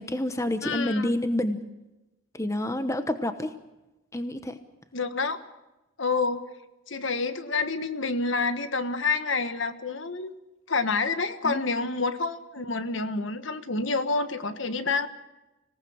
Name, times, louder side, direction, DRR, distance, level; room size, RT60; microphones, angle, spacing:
voice 1, 0.0-1.6 2.3-3.5 4.1-4.6 11.4-11.6, left 1 dB, 15° left, 10 dB, 1.0 m, -28 dB
voice 2, 0.6-1.1 4.9-5.4 6.0-6.4 6.9-10.3 10.7-15.1, left 4 dB, 65° left, 10 dB, 1.5 m, -28 dB
26.5 x 18.0 x 6.4 m, 1.0 s
head